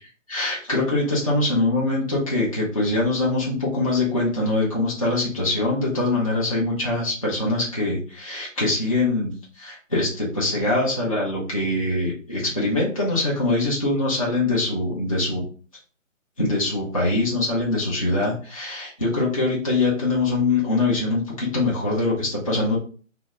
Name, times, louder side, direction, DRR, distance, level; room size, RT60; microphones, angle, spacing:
voice 1, 0.3-15.4 16.4-22.8, left 2 dB, 25° left, -6 dB, 0.6 m, -23 dB
2.7 x 2.0 x 3.4 m, 0.40 s
figure-of-eight pair, 165°, 40 cm